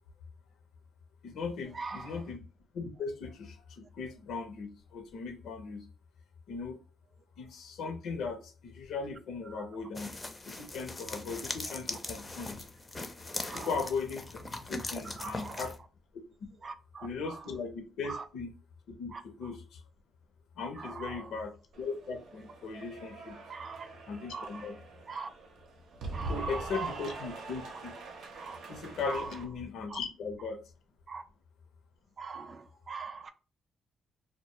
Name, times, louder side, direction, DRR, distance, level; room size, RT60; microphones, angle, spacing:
voice 1, 1.2-2.4 2.7-5.9 6.5-6.8 7.4-10.1 10.5-12.6 13.5-14.2 14.7-15.7 17.0-18.5 18.9-19.8 20.6-23.4 24.1-24.7 26.3-27.9 28.7-30.6, left 4 dB, 75° left, 0.6 m, -38 dB
voice 2, 1.7-2.2 9.5-9.8 13.5-13.9 15.2-15.7 16.6-17.5 18.0-18.3 19.1-19.5 20.7-21.4 23.5-23.9 24.3-24.7 25.1-25.3 26.1-27.4 28.3-28.6 29.0-29.4 29.9-30.0 30.4-30.5 31.1-31.2 32.2-33.3, right 4 dB, 40° right, 0.3 m, -42 dB
sound 1, 10.0-15.8, left 2 dB, 20° left, 0.4 m, -40 dB
Cheering / Applause, 21.7-29.4, right 3 dB, 75° right, 0.6 m, -44 dB
2.2 x 2.1 x 2.8 m
cardioid pair, 90°, 0 cm